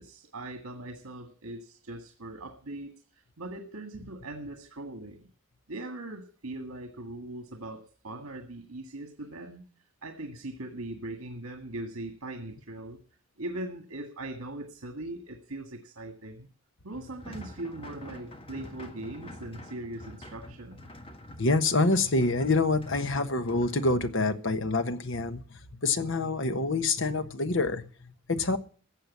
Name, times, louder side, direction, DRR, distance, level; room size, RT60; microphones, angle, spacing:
voice 1, 0.0-5.3 5.7-9.6 10.0-13.0 13.4-16.5 16.8-20.9, right 2 dB, 85° right, 1.8 m, -40 dB
sound 1, 16.9-24.0, left 1 dB, 25° left, 1.6 m, -46 dB
voice 2, 21.4-28.6, left 3 dB, 60° left, 1.3 m, -27 dB
15.0 x 7.8 x 8.4 m
head